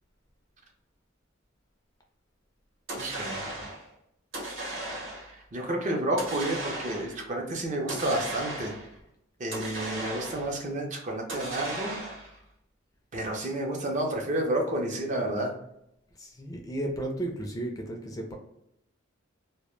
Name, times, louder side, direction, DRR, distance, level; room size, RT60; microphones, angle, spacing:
Rifle Shots, 2.9-3.9 4.3-5.4 6.2-7.2 7.9-8.9 9.5-10.6 11.3-12.4, right 1 dB, 65° right, 0.8 m, -36 dB
voice 1, 3.0-3.5 5.5-8.7 9.4-12.0 13.1-15.6, right 1 dB, 35° right, 1 dB, 0.5 m, -30 dB
voice 2, 16.2-18.3, right 1 dB, 20° left, 1 dB, 0.3 m, -34 dB
2.1 x 2.1 x 3.0 m, 0.79 s
head